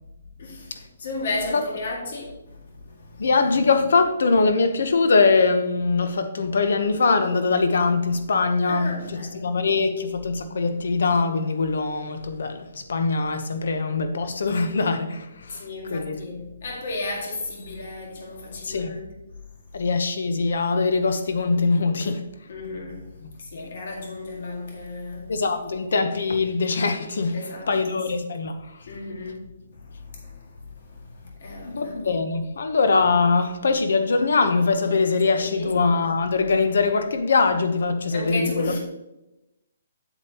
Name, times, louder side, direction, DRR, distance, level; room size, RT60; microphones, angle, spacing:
voice 1, 0.4-3.3 8.7-9.5 15.6-19.1 22.5-25.3 25.6-25.8 27.3-28.0 28.8-32.0 35.4-35.8 38.1-38.8, left 2 dB, 50° left, 2.0 m, -34 dB
voice 2, 3.2-8.9 9.3-15.6 15.9-16.2 18.6-18.9 19.7-22.2 23.2-23.7 25.3-27.4 27.7-28.6 31.6-38.8, left 4 dB, 65° left, 0.9 m, -22 dB
8.1 x 7.3 x 2.9 m
hypercardioid pair, 170°, 0 cm